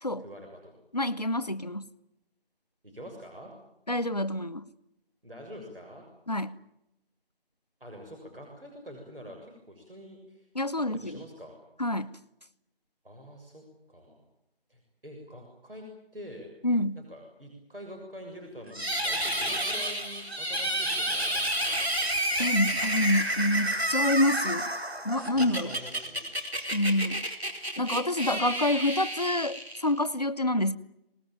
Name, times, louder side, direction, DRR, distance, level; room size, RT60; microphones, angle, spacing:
voice 1, 0.2-0.8 2.8-3.5 5.2-6.1 7.8-10.5 10.9-11.6 13.0-14.2 14.7-15.9 16.1-16.5 17.0-21.8 25.3-26.2, equal, 65° right, 2 dB, 7.1 m, -46 dB
voice 2, 0.9-1.9 3.9-4.6 6.3-6.6 10.5-11.2 11.8-12.2 16.6-17.0 22.4-24.7 25.0-25.8 26.7-27.3 27.8-30.8, left 1 dB, 40° left, 13 dB, 0.9 m, -27 dB
sound 1, 18.7-30.1, right 1 dB, 90° right, 4.8 m, -30 dB
25.5 x 20.0 x 9.2 m, 0.84 s
figure-of-eight pair, 170°, 31 cm